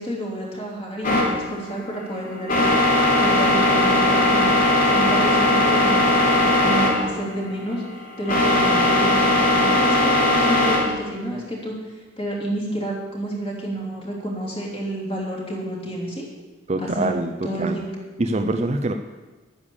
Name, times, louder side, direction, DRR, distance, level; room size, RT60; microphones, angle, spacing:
voice 1, 0.0-2.8 3.2-4.5 4.8-7.8 8.2-11.7 12.2-16.3 16.8-17.1 17.4-17.9, right 1 dB, 30° left, -3 dB, 3.1 m, -29 dB
sound 1, 1.0-10.8, left 1 dB, 45° left, 3.8 m, -19 dB
voice 2, 16.7-17.8 18.2-18.9, right 2 dB, 35° right, 5 dB, 0.6 m, -24 dB
10.5 x 9.9 x 7.1 m, 1.2 s
head